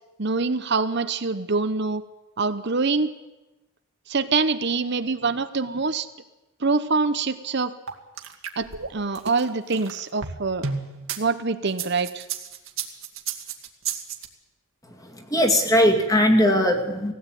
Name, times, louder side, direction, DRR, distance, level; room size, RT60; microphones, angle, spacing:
voice 1, 0.2-2.0 2.4-3.1 4.1-6.1 6.6-7.7 8.6-10.7 11.2-12.3, right 4 dB, 50° right, 11 dB, 0.9 m, -25 dB
sound 1, 7.9-11.2 11.7-14.3, right 6 dB, 65° right, 2.1 m, -32 dB
voice 2, 14.8-17.1, equal, 15° left, 2 dB, 2.3 m, -20 dB
20.0 x 16.5 x 9.2 m, 1.0 s
head